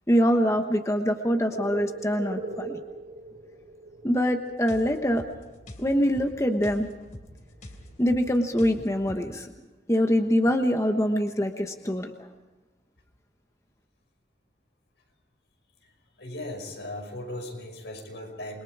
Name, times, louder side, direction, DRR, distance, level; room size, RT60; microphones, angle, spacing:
voice 1, 0.1-2.8 4.0-5.2 5.8-6.9 8.0-9.5 9.9-12.3, equal, 15° left, 5 dB, 1.2 m, -24 dB
sound 1, 1.3-5.9 6.2-7.1 7.4-8.4, right 2 dB, 55° right, 3.9 m, -40 dB
sound 2, 4.7-9.4, equal, 45° left, 3.3 m, -45 dB
voice 2, 16.2-18.6, left 1 dB, 85° left, 3 dB, 5.7 m, -37 dB
28.5 x 22.5 x 4.8 m, 1.2 s
head